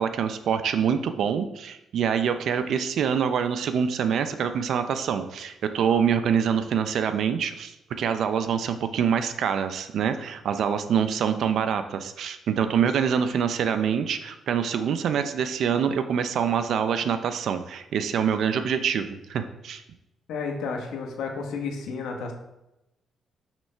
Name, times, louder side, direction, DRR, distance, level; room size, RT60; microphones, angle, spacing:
voice 1, 0.0-7.7 8.0-19.8, right 7 dB, 70° right, 9 dB, 0.4 m, -25 dB
voice 2, 20.3-22.3, left 5 dB, 80° left, 2 dB, 1.0 m, -32 dB
5.9 x 3.2 x 5.5 m, 0.91 s
cardioid pair, 90°, 0 cm